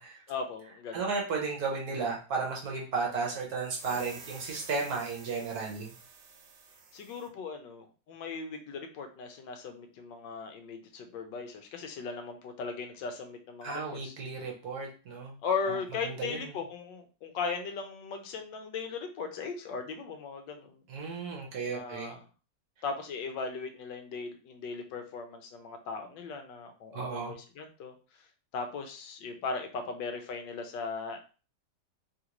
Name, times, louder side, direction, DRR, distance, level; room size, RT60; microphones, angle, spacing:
voice 1, 0.3-1.1 6.9-14.1 15.4-20.8 21.7-22.2 22.8-27.9 28.5-31.2, left 5 dB, 85° left, 5 dB, 1.3 m, -38 dB
voice 2, 0.9-5.9 13.6-15.3 15.7-15.8 16.0-16.5 20.9-22.1 26.9-27.3, right 4 dB, 65° right, -1 dB, 1.3 m, -34 dB
sound 1, 3.6-7.3, right 5 dB, 85° right, 1.3 m, -50 dB
3.4 x 2.5 x 2.9 m, 0.35 s
omnidirectional pair, 1.9 m